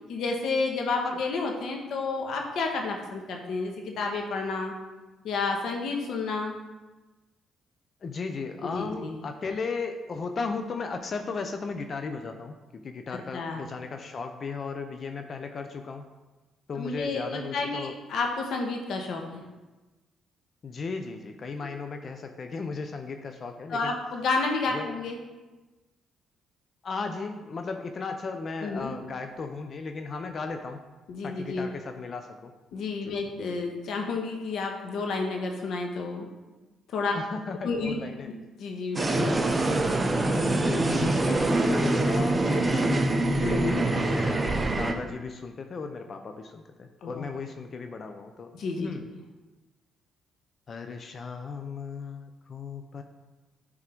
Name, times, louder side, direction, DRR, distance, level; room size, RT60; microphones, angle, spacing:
voice 1, 0.1-4.7 5.2-6.6 8.6-9.2 13.3-13.7 16.8-19.4 23.7-25.2 28.6-28.9 31.1-31.7 32.7-36.3 36.9-37.1 37.6-37.9 38.6-39.6 40.2-40.4 40.7-41.1 43.4-43.9 47.0-47.3 48.5-48.9, left 4 dB, 75° left, 2 dB, 1.2 m, -30 dB
voice 2, 8.0-16.1 16.7-18.0 20.6-23.9 24.7-24.9 26.8-30.8 31.2-32.5 33.0-33.2 37.1-38.3 39.2-39.9 40.3-49.0 50.7-53.0, left 4 dB, 45° left, 6 dB, 0.6 m, -36 dB
sound 1, 39.0-44.9, right 2 dB, 25° right, 0.8 m, -24 dB
9.7 x 3.7 x 4.5 m, 1.2 s
cardioid pair, 90°, 0 cm